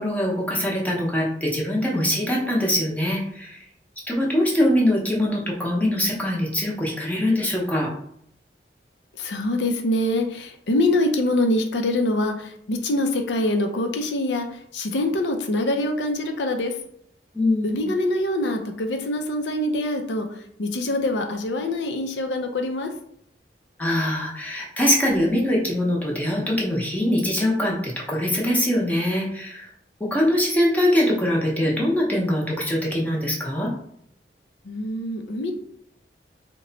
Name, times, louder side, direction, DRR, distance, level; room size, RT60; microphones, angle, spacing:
voice 1, 0.0-3.6 4.1-7.9 17.3-17.9 23.8-29.7 30.0-33.7, left 1 dB, 10° left, -3 dB, 0.7 m, -23 dB
voice 2, 9.2-16.7 17.6-20.3 20.6-22.9 34.6-35.5, left 1 dB, 80° left, 5 dB, 0.5 m, -24 dB
3.0 x 2.2 x 3.8 m, 0.69 s
head